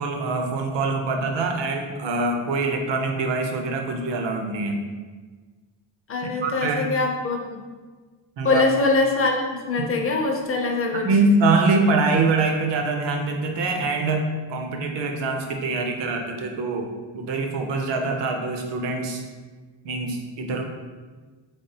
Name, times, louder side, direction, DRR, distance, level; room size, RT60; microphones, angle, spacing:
voice 1, 0.0-4.9 6.2-6.9 8.4-8.6 11.0-19.2 19.8-20.6, right 3 dB, 65° right, 3 dB, 0.7 m, -24 dB
voice 2, 6.1-7.6 8.4-11.1, left 3 dB, 30° left, 1 dB, 0.4 m, -23 dB
3.7 x 3.4 x 2.7 m, 1.4 s
cardioid pair, 155°, 47 cm